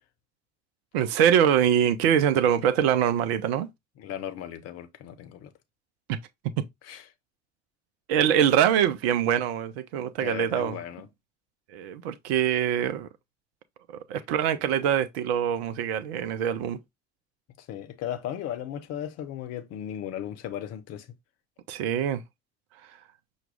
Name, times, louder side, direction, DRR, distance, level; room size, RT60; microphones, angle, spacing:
voice 1, 0.9-3.7 6.6-6.7 8.1-10.8 11.7-13.1 13.9-16.8 21.7-22.2, right 9 dB, 60° right, 0.6 m, -24 dB
voice 2, 4.0-5.5 6.8-7.0 10.2-11.1 17.6-21.1, left 10 dB, 45° left, 0.7 m, -36 dB
5.9 x 2.3 x 3.3 m
figure-of-eight pair, 60°, 34 cm